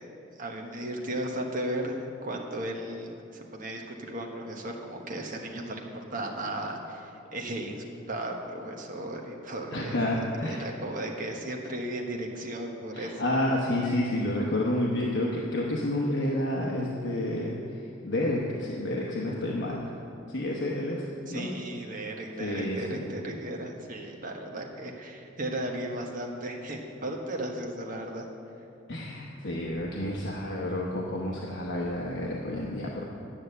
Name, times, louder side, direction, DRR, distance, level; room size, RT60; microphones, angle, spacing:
voice 1, 0.4-10.0 10.4-13.3 21.3-28.3, right 1 dB, 45° right, 1 dB, 1.2 m, -35 dB
voice 2, 9.7-10.7 12.9-19.9 20.3-21.5 22.4-23.1 28.9-33.0, left 1 dB, 65° left, -3 dB, 1.0 m, -30 dB
9.9 x 6.6 x 7.9 m, 2.7 s
head